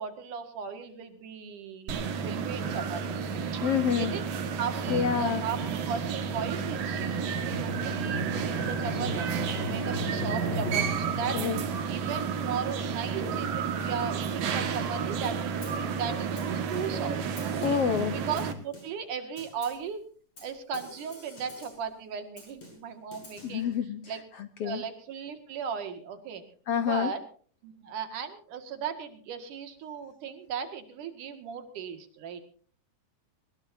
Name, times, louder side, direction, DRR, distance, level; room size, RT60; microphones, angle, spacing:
voice 1, 0.0-1.9 2.2-3.1 3.5-3.7 3.9-4.3 4.6-17.8 18.1-20.0 20.4-23.7 24.1-24.2 24.6-26.4 26.8-27.2 27.6-32.4, right 6 dB, 70° right, 7 dB, 3.4 m, -37 dB
sound 1, 1.9-18.5, right 6 dB, 90° right, 3.5 m, -31 dB
voice 2, 3.6-4.1 4.9-5.4 11.3-11.6 17.6-18.1 23.4-24.0 24.4-24.8 26.7-27.1, left 8 dB, 75° left, 10 dB, 1.4 m, -27 dB
Drum, 4.9-13.2, right 1 dB, 30° right, 7.8 m, -37 dB
Snare drum, 15.6-15.9 16.4-17.1 17.4-17.9 18.4-19.1 19.4-19.9 20.4-21.9 22.4-23.6, left 2 dB, 40° left, 7.9 m, -49 dB
21.5 x 21.0 x 2.7 m, 0.44 s
omnidirectional pair, 3.8 m